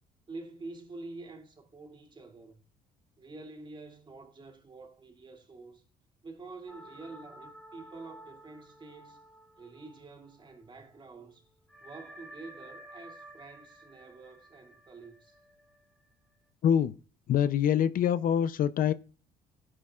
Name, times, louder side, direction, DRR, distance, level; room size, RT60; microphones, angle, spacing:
voice 1, 0.3-2.6 3.2-5.8 6.2-9.2 9.6-11.5 11.8-15.4, right 3 dB, 30° right, 2.7 m, -47 dB
sound 1, 6.7-10.7 11.0-11.1 11.7-16.4, right 1 dB, 5° left, 3.1 m, -52 dB
voice 2, 16.6-16.9 17.3-18.9, left 9 dB, 55° left, 0.6 m, -25 dB
16.0 x 9.8 x 2.4 m
cardioid pair, 110°, 17 cm